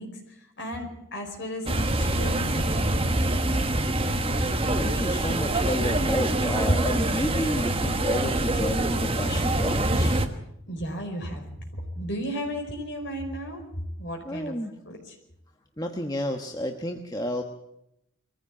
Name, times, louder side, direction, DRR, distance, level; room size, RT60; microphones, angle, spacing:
voice 1, 0.0-3.3 10.7-11.4 11.7-13.6 14.0-14.6 14.8-15.1, equal, 50° left, 3 dB, 5.0 m, -35 dB
sound 1, 1.7-10.3, right 1 dB, 25° right, 1.3 m, -25 dB
voice 2, 4.7-10.1 14.2-14.7 15.8-17.4, equal, 15° left, 3 dB, 1.1 m, -31 dB
22.5 x 15.0 x 8.4 m, 0.83 s
head